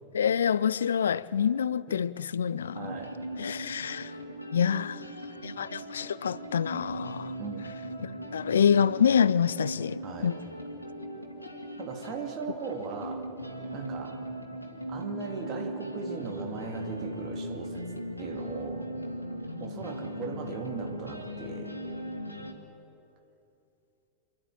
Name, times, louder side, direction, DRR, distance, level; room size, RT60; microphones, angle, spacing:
voice 1, 0.1-2.8 3.4-4.1 4.5-5.0 5.4-7.3 8.3-10.4, left 7 dB, 65° left, 0.4 m, -26 dB
voice 2, 1.9-2.2 2.7-3.2 7.4-7.6 10.0-10.4 11.8-13.3 13.7-14.2 14.9-17.9 18.2-18.9 19.6-21.7, right 5 dB, 35° right, 2.6 m, -38 dB
sound 1, 2.7-22.5, equal, 85° left, 1.7 m, -39 dB
27.5 x 10.5 x 9.2 m
figure-of-eight pair, 90°, 0 cm